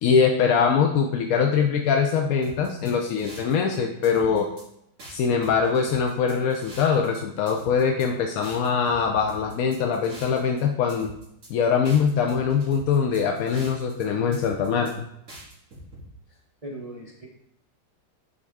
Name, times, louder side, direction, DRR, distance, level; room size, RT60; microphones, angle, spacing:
voice 1, 0.0-4.5 5.1-11.1 11.5-15.1, left 6 dB, 70° left, 3 dB, 0.8 m, -23 dB
sound 1, 2.4-3.7 4.0-4.6 5.0-7.2 7.5-8.1 8.4-10.6 10.9-11.5 11.8-14.0 14.3-14.9 15.3-16.0, right 1 dB, 45° right, 2.3 m, -45 dB
voice 2, 16.3-17.3, right 1 dB, 60° right, -2 dB, 0.3 m, -40 dB
9.4 x 3.6 x 3.5 m, 0.77 s
omnidirectional pair, 2.0 m